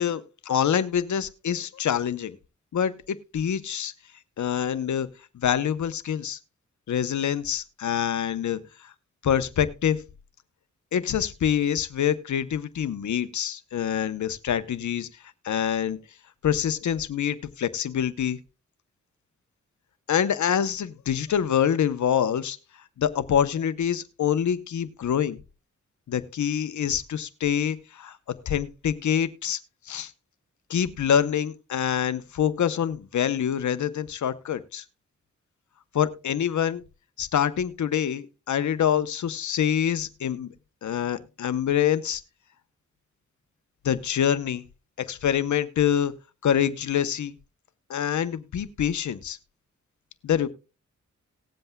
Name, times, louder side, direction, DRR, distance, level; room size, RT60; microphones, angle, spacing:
voice 1, 0.0-2.4 2.7-3.9 4.4-5.1 5.3-6.4 6.9-8.6 9.2-10.0 10.9-15.1 15.4-16.0 16.4-18.4 20.1-22.6 23.0-25.4 26.1-28.2 28.4-29.6 29.9-30.1 30.7-34.8 35.9-36.8 37.2-40.5 40.8-42.2 43.8-44.6 45.0-46.1 46.4-47.3 47.9-49.4 50.2-50.5, left 9 dB, 75° left, 13 dB, 0.8 m, -25 dB
19.0 x 7.8 x 2.3 m, 0.31 s
wide cardioid pair, 90°, 29 cm